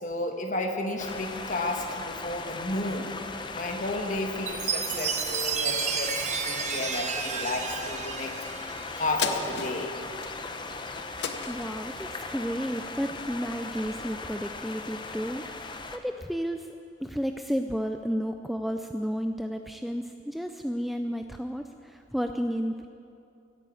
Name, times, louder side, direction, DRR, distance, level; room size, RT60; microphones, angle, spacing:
voice 1, 0.0-3.1 3.5-8.3 8.9-9.9, left 2 dB, 40° left, 3 dB, 1.5 m, -32 dB
sound 1, 1.0-16.0, left 3 dB, 25° left, 0.7 m, -38 dB
Chime, 4.5-9.1, right 7 dB, 40° right, 0.8 m, -31 dB
sound 2, 9.2-13.9 14.4-14.5, left 6 dB, 65° left, 0.9 m, -37 dB
voice 2, 11.5-16.7 17.0-22.9, equal, ahead, 6 dB, 0.3 m, -32 dB
15.5 x 9.0 x 8.4 m, 2.5 s
head